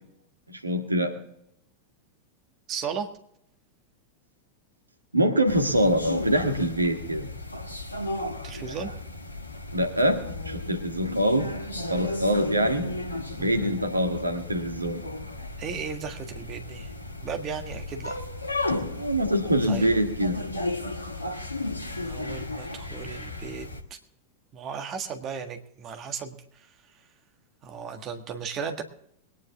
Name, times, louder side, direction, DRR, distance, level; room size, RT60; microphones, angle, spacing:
voice 1, 0.5-1.1 5.1-7.3 9.7-11.5 11.9-12.9 13.4-15.0 18.7-20.4, equal, 80° right, 5 dB, 1.7 m, -24 dB
voice 2, 2.7-3.1 8.4-8.9 13.4-13.8 15.6-16.9 17.2-18.2 19.7-19.8 22.0-24.0 24.5-26.4 27.6-28.8, right 6 dB, 30° right, 6 dB, 1.6 m, -35 dB
sound 1, 5.5-23.8, left 2 dB, 80° left, 1.4 m, -34 dB
21.5 x 10.0 x 3.6 m, 0.72 s
figure-of-eight pair, 90°, 0 cm